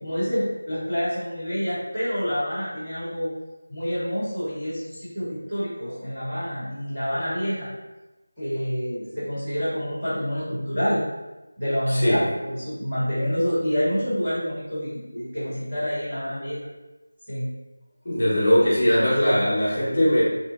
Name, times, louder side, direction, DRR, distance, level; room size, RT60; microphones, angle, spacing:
voice 1, 0.0-3.3 3.7-7.7 8.4-11.0 11.6-16.6 17.3-17.5, equal, 5° right, -20 dB, 0.6 m, -27 dB
voice 2, 11.9-12.3 18.0-20.2, equal, 30° left, -8 dB, 0.7 m, -20 dB
2.7 x 2.4 x 2.3 m, 1.1 s
figure-of-eight pair, 180°, 0 cm